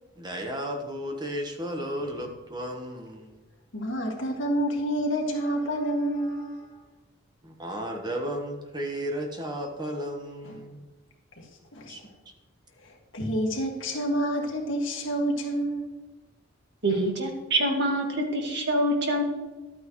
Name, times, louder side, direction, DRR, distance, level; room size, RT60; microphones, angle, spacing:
voice 1, 0.2-3.3 7.4-10.8 11.9-12.0, equal, 20° right, 2 dB, 1.3 m, -34 dB
voice 2, 3.7-6.8 10.4-10.6 11.4-11.5 11.7-12.0 12.8-15.9 16.9-17.0, right 1 dB, 70° left, 0 dB, 2.0 m, -29 dB
voice 3, 16.8-19.2, right 1 dB, 60° right, 1 dB, 1.9 m, -25 dB
12.0 x 9.0 x 3.1 m, 1.2 s
head